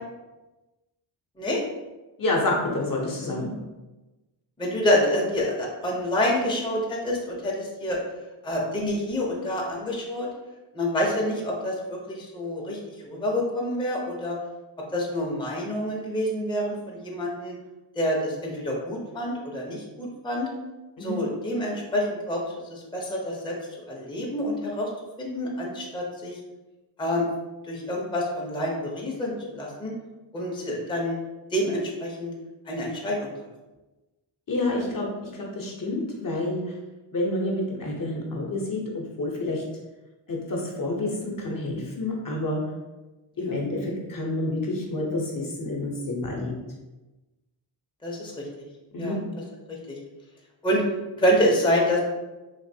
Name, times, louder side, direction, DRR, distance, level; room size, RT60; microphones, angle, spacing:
voice 1, 2.2-3.5 21.0-21.2 34.5-35.1 35.4-36.6 37.1-39.6 40.3-42.6 43.4-46.5 48.9-49.2, left 2 dB, 45° left, -2 dB, 0.8 m, -28 dB
voice 2, 4.6-8.0 8.4-10.3 10.7-14.4 14.9-17.5 18.0-20.5 21.0-23.6 23.9-24.9 25.2-26.3 27.0-27.3 27.7-29.9 30.3-31.2 31.5-32.3 32.7-33.3 43.4-43.5 48.0-48.3 49.0-49.2 49.7-50.0 50.6-50.8 51.2-52.0, equal, 10° left, -3 dB, 0.6 m, -27 dB
3.3 x 2.5 x 2.7 m, 1.1 s
cardioid pair, 80°, 49 cm